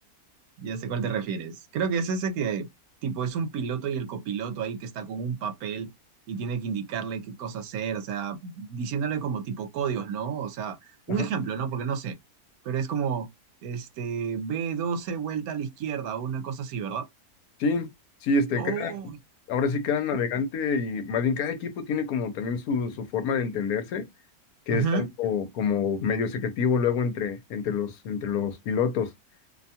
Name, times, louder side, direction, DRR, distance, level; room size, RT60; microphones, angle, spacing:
voice 1, 0.6-2.7 3.0-5.9 6.3-12.2 12.6-13.3 13.6-17.1 18.6-19.2 20.3-20.4 24.7-25.1, right 6 dB, 75° right, 1.0 m, -30 dB
voice 2, 18.2-18.9 19.5-24.1 24.7-29.1, left 5 dB, 75° left, 1.1 m, -27 dB
2.7 x 2.2 x 2.7 m
omnidirectional pair, 1.6 m